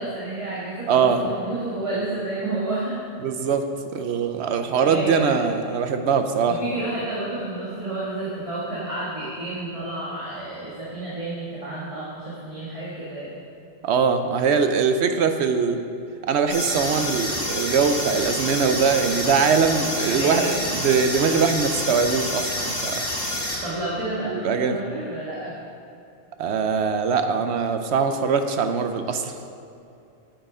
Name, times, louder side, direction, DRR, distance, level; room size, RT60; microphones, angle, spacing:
voice 1, 0.0-3.1 4.4-5.4 6.5-13.4 20.1-20.5 23.6-25.6, right 2 dB, 30° right, -8 dB, 1.6 m, -30 dB
voice 2, 0.9-1.2 3.2-3.7 3.9-6.6 13.8-15.8 16.3-23.0 24.3-24.8 26.4-29.3, right 5 dB, 70° right, 8 dB, 0.9 m, -22 dB
sound 1, 16.5-23.6, left 1 dB, 45° left, 2.8 m, -28 dB
8.9 x 7.9 x 5.0 m, 2.6 s
omnidirectional pair, 1.2 m